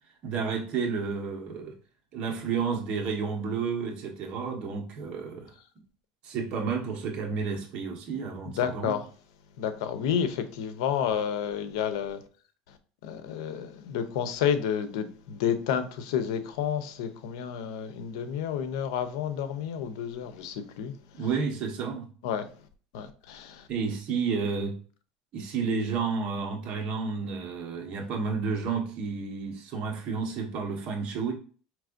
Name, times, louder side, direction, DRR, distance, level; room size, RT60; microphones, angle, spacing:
voice 1, 0.2-1.7 2.1-5.5 6.2-9.0 21.1-22.1 23.7-24.8 25.3-31.3, right 5 dB, 45° right, 1.2 m, -31 dB
voice 2, 8.6-9.0 9.6-12.2 13.0-20.9 22.2-22.5 22.9-23.7, left 8 dB, 80° left, 0.7 m, -30 dB
4.7 x 3.2 x 2.6 m
supercardioid pair, 130°, 3 cm